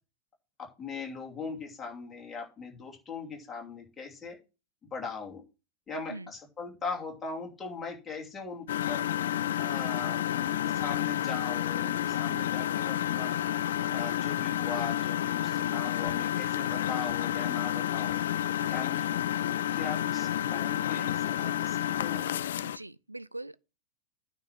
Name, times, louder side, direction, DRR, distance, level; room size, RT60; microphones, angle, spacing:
voice 1, 0.6-4.4 4.8-5.4 5.9-9.0 9.5-13.3 13.8-18.2 18.7-19.2 19.6-22.2, left 4 dB, 15° left, 2.8 m, -40 dB
Engine, 8.7-22.8, left 11 dB, 60° left, 0.4 m, -30 dB
voice 2, 22.6-23.6, right 2 dB, 85° right, 0.4 m, -42 dB
9.3 x 4.6 x 7.3 m
figure-of-eight pair, 90°, 0 cm